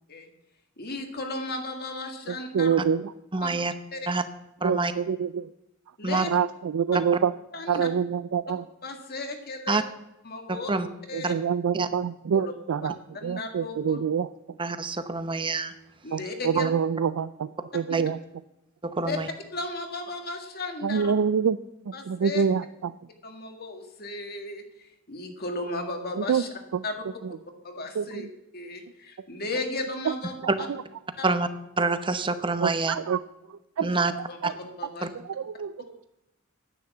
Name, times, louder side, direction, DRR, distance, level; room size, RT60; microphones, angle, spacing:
voice 1, 0.8-2.7 3.4-3.5 3.9-4.1 6.0-6.3 7.5-7.9 8.8-9.8 10.3-10.7 11.1-11.3 12.3-12.5 13.2-14.0 16.0-16.7 19.1-19.2 19.5-21.1 21.9-22.5 23.2-26.5 26.8-27.0 27.6-28.3 28.5-30.7 31.2-31.3 33.8-34.0 34.3-35.1, left 2 dB, 45° left, 4 dB, 1.9 m, -35 dB
voice 2, 2.3-3.5 4.6-5.5 6.3-7.3 7.7-8.6 11.1-14.6 16.1-18.2 20.8-21.6 21.8-22.9 26.2-26.4 26.7-26.8 27.2-27.4 27.9-28.3 29.2-29.3 30.0-30.1 30.7-30.8 32.6-34.5 35.1-36.0, right 7 dB, 80° right, 14 dB, 0.4 m, -27 dB
voice 3, 3.3-3.7 4.1-4.2 4.6-4.9 6.0-6.3 9.7-9.8 10.7-10.9 11.2-11.3 11.8-11.9 14.6-15.7 17.9-18.0 18.8-19.3 31.2-31.5 31.8-33.0 33.8-34.1, right 3 dB, 25° right, 11 dB, 0.8 m, -26 dB
10.0 x 9.5 x 7.2 m, 0.91 s
head